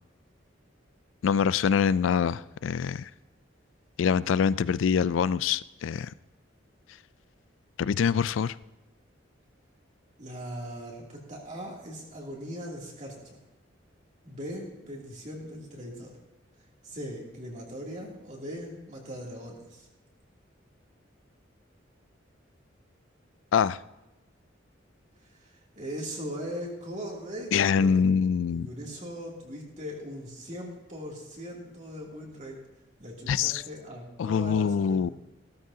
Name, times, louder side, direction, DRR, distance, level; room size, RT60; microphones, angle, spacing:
voice 1, 1.2-3.1 4.0-6.1 7.8-8.6 23.5-23.8 27.5-28.7 33.3-33.6 34.2-35.1, left 6 dB, 85° left, 18 dB, 0.3 m, -24 dB
voice 2, 10.2-13.4 14.2-16.2 16.8-19.9 25.3-32.6 33.0-35.1, equal, 40° right, -3 dB, 2.8 m, -40 dB
16.5 x 13.5 x 2.8 m, 1.0 s
head